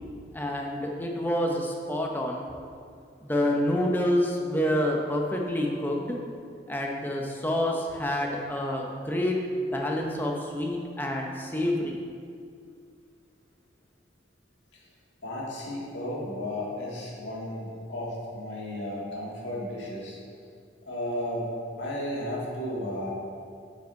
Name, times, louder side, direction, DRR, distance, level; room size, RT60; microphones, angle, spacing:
voice 1, 0.3-2.4 3.2-6.2 6.7-9.4 9.7-12.0, left 1 dB, 10° left, 0 dB, 0.7 m, -28 dB
voice 2, 15.2-20.2 20.9-23.1, left 1 dB, 80° left, -5 dB, 1.8 m, -34 dB
7.8 x 5.2 x 4.5 m, 2.3 s
head